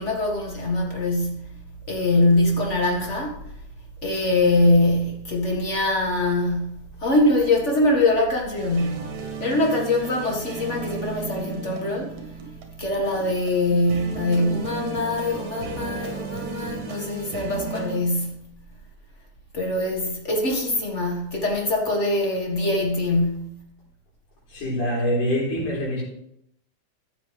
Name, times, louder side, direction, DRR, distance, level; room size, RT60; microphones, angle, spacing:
voice 1, 0.0-1.5 1.9-3.4 4.0-12.1 12.8-18.4 19.5-23.6, left 2 dB, 35° left, 1.2 m, -23 dB
sound 1, 8.6-18.0, right 6 dB, 75° right, 2.7 m, -35 dB
voice 2, 24.5-26.0, equal, 75° left, 5.7 m, -24 dB
13.5 x 7.5 x 3.3 m
omnidirectional pair, 3.5 m